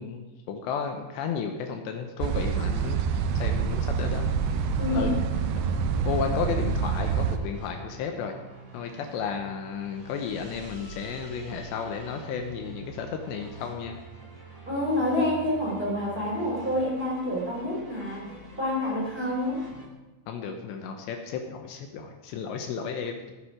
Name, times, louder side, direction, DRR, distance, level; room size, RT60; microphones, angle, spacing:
voice 1, 0.0-3.0 3.3-4.3 4.9-5.2 6.1-8.3 8.7-14.0 20.3-23.1, left 6 dB, 75° left, 5 dB, 3.1 m, -33 dB
sound 1, 2.2-7.4, right 6 dB, 75° right, 2.9 m, -27 dB
sound 2, 2.3-19.9, right 3 dB, 35° right, 0.5 m, -46 dB
voice 2, 4.8-5.2 14.6-19.6, left 1 dB, 15° right, -3 dB, 3.3 m, -28 dB
17.5 x 9.8 x 5.0 m, 1.2 s
omnidirectional pair, 5.4 m